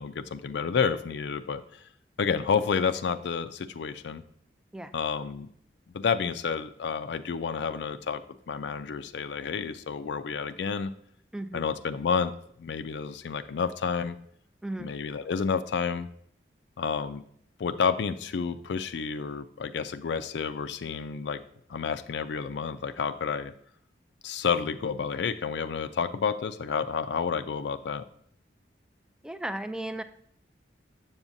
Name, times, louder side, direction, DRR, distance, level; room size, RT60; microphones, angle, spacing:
voice 1, 0.0-1.8 2.2-4.2 4.9-5.5 5.9-8.2 8.5-10.9 11.5-12.3 12.6-14.2 14.8-16.1 16.8-17.2 17.6-21.4 21.7-23.5 24.2-28.0, left 6 dB, 75° left, 10 dB, 0.4 m, -30 dB
voice 2, 11.3-11.7 14.6-14.9 29.2-30.0, right 1 dB, 5° right, 10 dB, 0.3 m, -35 dB
7.2 x 7.1 x 2.6 m, 0.67 s
head